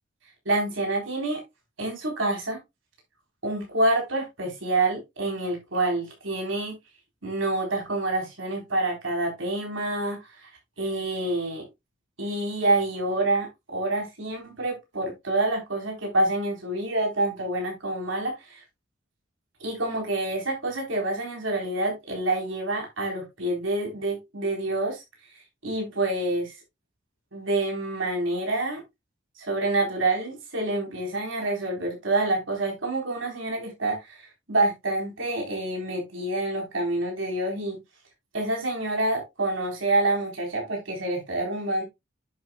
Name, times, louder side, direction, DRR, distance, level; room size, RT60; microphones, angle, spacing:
voice 1, 0.5-1.4 1.8-2.6 3.4-6.7 7.2-10.5 10.8-11.6 12.2-18.6 19.6-25.0 25.6-26.5 27.3-28.8 29.4-37.8 38.3-41.8, right 2 dB, 85° right, 3.9 m, -27 dB
10.5 x 7.3 x 2.3 m
head